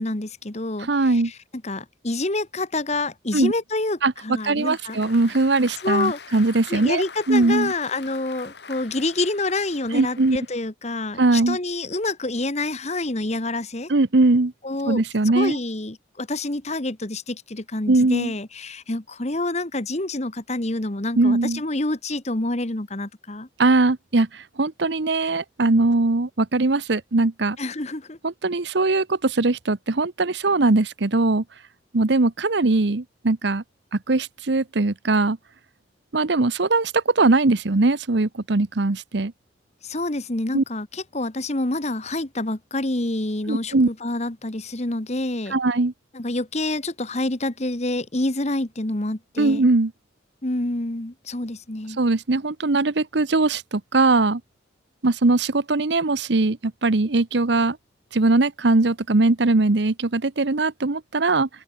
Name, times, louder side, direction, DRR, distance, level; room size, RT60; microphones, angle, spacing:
voice 1, 0.0-1.3 1.6-5.0 5.8-6.2 6.7-13.9 14.6-15.0 15.3-23.5 27.6-28.2 39.8-45.6 46.1-49.7 50.4-52.0, left 2 dB, 35° left, 1.5 m, -27 dB
voice 2, 0.9-1.3 3.3-3.5 4.0-4.1 4.4-7.7 9.9-10.4 11.2-11.6 13.9-14.5 14.8-15.6 17.9-18.3 21.2-21.6 23.6-27.6 28.2-31.4 31.9-33.6 33.9-35.4 36.1-39.3 40.5-40.6 43.5-43.9 45.5-45.9 49.4-49.9 52.0-54.4 55.0-57.8 58.1-61.5, right 3 dB, 65° right, 0.9 m, -20 dB
Applause, 4.4-10.7, left 5 dB, 60° left, 2.2 m, -43 dB
open air
head